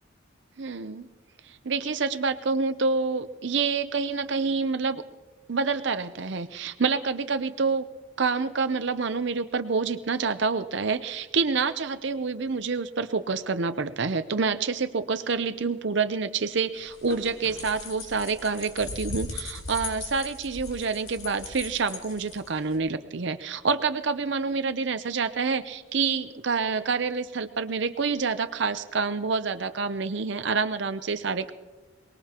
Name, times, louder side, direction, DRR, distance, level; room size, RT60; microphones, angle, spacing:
voice 1, 0.6-1.1 1.4-5.0 5.5-7.9 8.2-31.5, right 4 dB, 55° right, 10 dB, 0.6 m, -27 dB
sound 1, 16.7-22.8, left 3 dB, 85° left, 4.4 m, -38 dB
23.5 x 20.5 x 2.9 m, 1.2 s
head